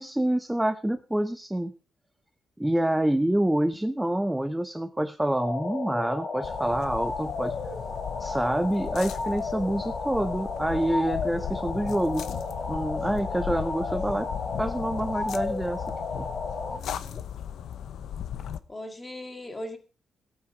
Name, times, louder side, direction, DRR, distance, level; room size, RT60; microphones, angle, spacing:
voice 1, 0.0-1.7 2.6-7.6 8.2-12.3 12.7-14.3 14.6-15.8 16.1-16.3, right 1 dB, 5° right, 9 dB, 0.5 m, -27 dB
sound 1, 5.4-16.8, left 3 dB, 40° left, 1.9 m, -33 dB
sound 2, 6.4-18.6, left 9 dB, 90° left, 0.8 m, -37 dB
voice 2, 16.7-17.2 18.7-19.8, left 1 dB, 15° left, 6 dB, 2.1 m, -39 dB
17.0 x 8.8 x 4.8 m, 0.35 s
wide cardioid pair, 170°, 0 cm